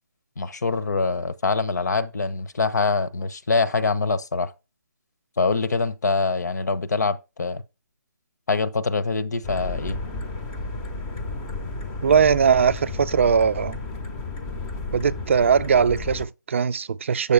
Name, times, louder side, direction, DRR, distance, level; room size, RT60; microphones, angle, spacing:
voice 1, 0.4-4.5 5.4-7.6 8.5-10.0, left 4 dB, 65° left, 0.9 m, -24 dB
sound 1, 9.4-16.2, left 3 dB, 10° left, 0.7 m, -32 dB
voice 2, 12.0-13.8 14.9-17.3, right 6 dB, 45° right, 0.4 m, -20 dB
7.9 x 7.0 x 3.3 m
hypercardioid pair, 165°, 10 cm